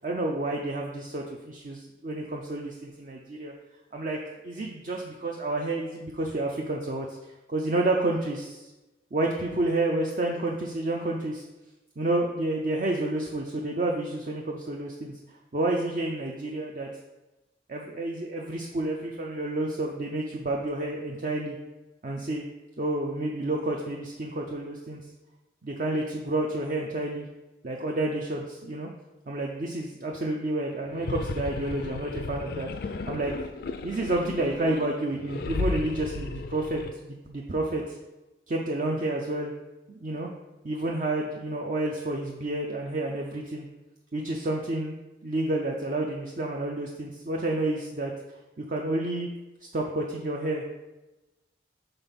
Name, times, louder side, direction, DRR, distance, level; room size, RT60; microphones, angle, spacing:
voice 1, 0.0-3.5 3.9-4.2 4.4-7.1 7.5-8.7 9.1-11.5 12.0-15.1 15.5-16.9 17.7-21.6 22.0-22.4 22.8-25.0 25.6-27.2 27.6-28.9 29.3-33.3 33.8-38.0 38.5-39.5 39.9-40.3 40.6-43.6 44.1-44.9 45.2-48.1 48.7-49.3 49.7-50.6, right 2 dB, 45° right, 0 dB, 0.5 m, -30 dB
sound 1, 30.8-36.9, left 3 dB, 55° left, 0.4 m, -34 dB
5.3 x 4.0 x 5.8 m, 1.1 s
head